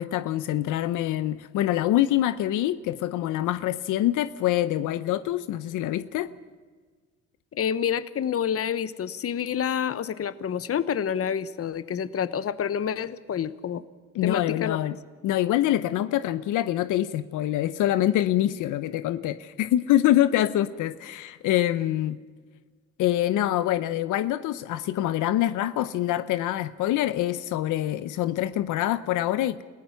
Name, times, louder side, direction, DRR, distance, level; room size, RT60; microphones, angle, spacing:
voice 1, 0.0-6.3 14.1-15.0 15.2-22.2 23.0-29.6, left 13 dB, 85° left, 13 dB, 0.8 m, -25 dB
voice 2, 7.5-13.8 14.2-14.8, left 8 dB, 50° left, 15 dB, 1.0 m, -28 dB
29.0 x 16.0 x 5.9 m, 1.5 s
cardioid pair, 90°, 30 cm